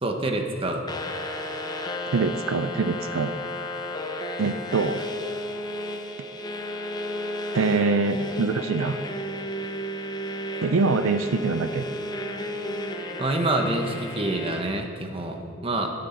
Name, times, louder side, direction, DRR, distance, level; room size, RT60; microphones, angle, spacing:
voice 1, 0.0-0.8 13.2-15.9, right 2 dB, 25° right, 3 dB, 1.1 m, -27 dB
sound 1, 0.9-14.6, left 1 dB, 20° left, 0.7 m, -33 dB
voice 2, 2.1-3.3 4.4-5.0 7.5-9.0 10.6-11.9, right 4 dB, 85° right, 10 dB, 0.5 m, -24 dB
12.0 x 9.1 x 5.8 m, 2.3 s
head